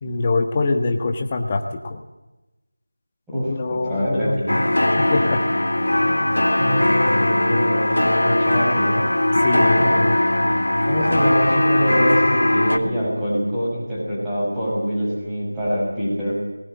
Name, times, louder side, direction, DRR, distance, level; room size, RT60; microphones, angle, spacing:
voice 1, 0.0-2.0 3.5-4.4 5.0-5.4 9.4-9.9, left 3 dB, 20° left, 4 dB, 1.4 m, -23 dB
voice 2, 3.3-4.6 5.1-5.2 6.0-6.3 6.6-9.0 9.8-10.1 10.8-16.3, equal, 5° right, -10 dB, 6.1 m, -24 dB
sound 1, 4.5-12.8, left 1 dB, 75° left, 2.6 m, -19 dB
19.5 x 17.0 x 9.0 m, 1.0 s
figure-of-eight pair, 175°, 0 cm